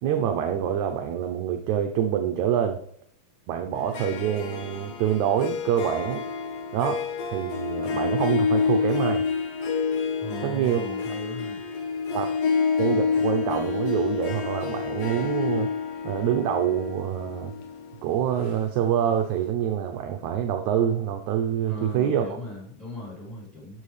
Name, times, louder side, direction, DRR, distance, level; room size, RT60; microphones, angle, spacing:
voice 1, 0.0-2.8 3.5-6.2 6.7-9.2 10.4-10.9 12.1-12.3 12.8-15.7 16.0-17.5 18.0-22.4, right 9 dB, 75° right, 4 dB, 1.8 m, -26 dB
Harp, 3.8-19.1, left 5 dB, 85° left, 2.9 m, -28 dB
voice 2, 10.2-11.6 21.6-23.8, equal, ahead, -3 dB, 3.7 m, -38 dB
12.0 x 7.1 x 3.3 m, 0.63 s
omnidirectional pair, 3.9 m